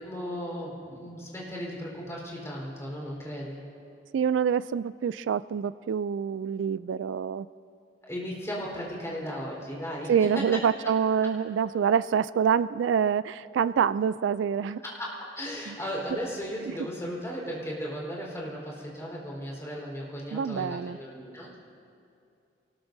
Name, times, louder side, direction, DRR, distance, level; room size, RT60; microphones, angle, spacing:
voice 1, 0.0-3.6 8.0-10.5 14.8-21.6, equal, 15° left, -4 dB, 4.1 m, -36 dB
voice 2, 4.1-7.5 10.1-14.8 15.7-15.8 16.7-16.8 20.3-21.0, right 7 dB, 75° right, 16 dB, 0.3 m, -26 dB
27.0 x 19.5 x 2.7 m, 2.5 s
head